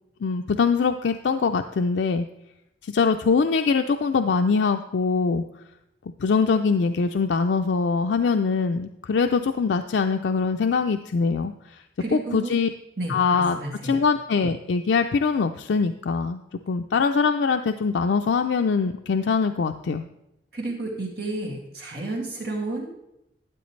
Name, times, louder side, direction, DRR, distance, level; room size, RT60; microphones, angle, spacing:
voice 1, 0.2-2.3 2.8-5.4 6.2-11.5 12.1-12.7 13.1-13.6 13.8-16.4 16.7-20.0, left 5 dB, 90° left, 6 dB, 0.4 m, -23 dB
voice 2, 12.0-12.5 13.0-14.0 20.5-22.9, right 2 dB, 65° right, -2 dB, 2.3 m, -31 dB
12.0 x 9.3 x 3.2 m, 0.85 s
head